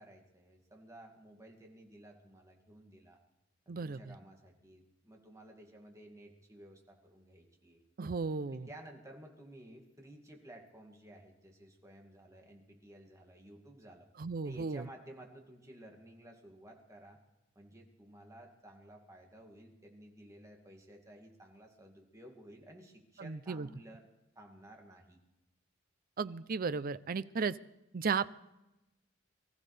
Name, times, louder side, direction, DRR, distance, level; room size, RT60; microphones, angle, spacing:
voice 1, 0.0-3.2 3.7-7.8 8.5-14.1 14.4-17.2 17.6-24.1 24.4-25.2, right 1 dB, 15° right, 1 dB, 2.3 m, -54 dB
voice 2, 3.7-4.0 8.0-8.7 14.2-14.8 23.2-23.7 26.2-27.6 27.9-28.3, right 5 dB, 45° right, 16 dB, 0.5 m, -34 dB
24.0 x 14.5 x 3.3 m, 0.95 s
head